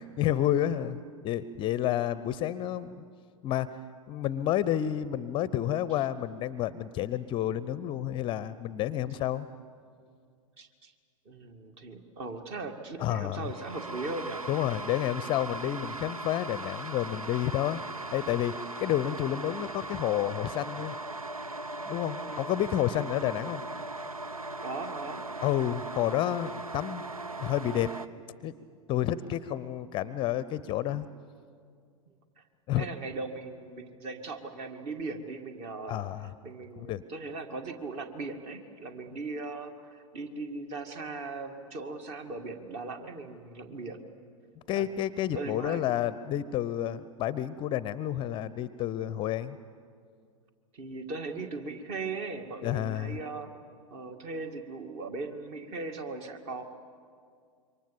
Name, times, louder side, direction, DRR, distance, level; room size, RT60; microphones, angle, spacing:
voice 1, 0.0-3.0 3.4-3.7 4.1-9.5 13.0-13.5 14.5-17.8 18.1-20.9 21.9-23.6 25.4-27.0 27.4-27.9 28.4-28.5 28.9-31.1 32.7-32.9 35.9-36.3 36.8-37.0 44.7-49.6 52.6-53.2, left 12 dB, 30° left, 17 dB, 0.6 m, -30 dB
voice 2, 10.6-10.9 11.3-14.4 15.3-15.4 22.2-22.5 23.2-23.4 24.6-25.3 32.4-32.5 32.8-36.1 36.4-44.0 44.7-44.9 45.3-45.9 50.7-53.5 53.9-56.6, right 3 dB, 40° right, 7 dB, 2.1 m, -38 dB
sound 1, 13.3-28.1, right 2 dB, 85° right, 0.7 m, -39 dB
27.0 x 24.0 x 7.3 m, 2.2 s
figure-of-eight pair, 95°, 18 cm